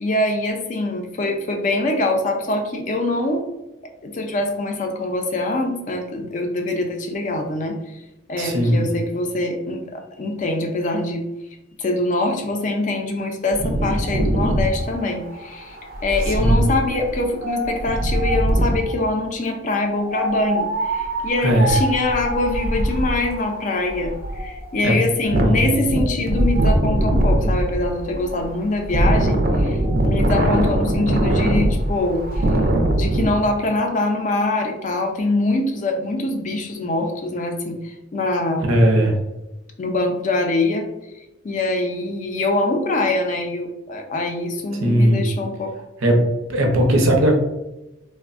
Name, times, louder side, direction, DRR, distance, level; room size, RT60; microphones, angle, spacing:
voice 1, 0.0-3.5 4.0-7.8 8.3-11.3 11.8-32.4 32.9-38.6 39.8-40.9 41.4-45.7, left 2 dB, 35° left, 4 dB, 0.4 m, -24 dB
voice 2, 8.4-8.9 16.3-16.6 21.4-21.8 24.8-25.0 25.4-25.8 38.6-39.1 44.8-45.2 46.0-46.2 46.5-47.3, right 1 dB, 85° right, 2 dB, 0.6 m, -18 dB
Wind, 13.5-18.9 20.0-33.3, right 1 dB, 45° right, 0.4 m, -22 dB
3.3 x 2.1 x 2.4 m, 0.97 s
head